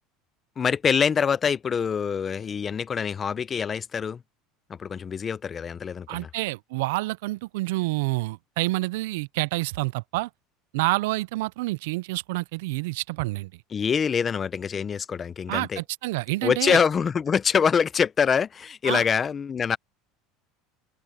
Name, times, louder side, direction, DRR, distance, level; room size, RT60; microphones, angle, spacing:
voice 1, 0.6-4.2 4.8-6.3 13.7-15.8 16.4-19.8, left 6 dB, 25° left, 0.7 m, -25 dB
voice 2, 6.1-10.3 10.7-13.5 15.5-16.8 18.8-19.0, right 21 dB, 85° right, 0.4 m, -28 dB
supercardioid pair, 135°, 0 cm